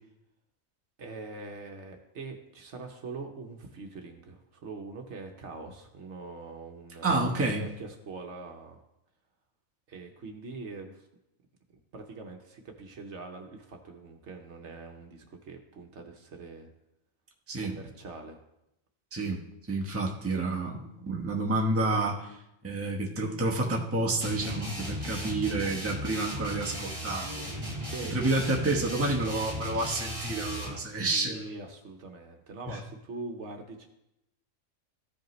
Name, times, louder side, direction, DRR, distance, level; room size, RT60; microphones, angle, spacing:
voice 1, 1.0-8.8 9.9-11.0 11.7-16.7 17.6-18.4 27.9-28.2 31.1-33.9, right 3 dB, 60° right, 3 dB, 1.1 m, -43 dB
voice 2, 7.0-7.7 17.5-17.7 19.1-22.4 22.6-27.5 28.1-31.5 32.7-32.8, right 2 dB, 10° right, -1 dB, 0.8 m, -29 dB
sound 1, 24.2-30.8, equal, 35° right, 2.5 m, -36 dB
14.5 x 5.2 x 3.1 m, 0.86 s
omnidirectional pair, 1.4 m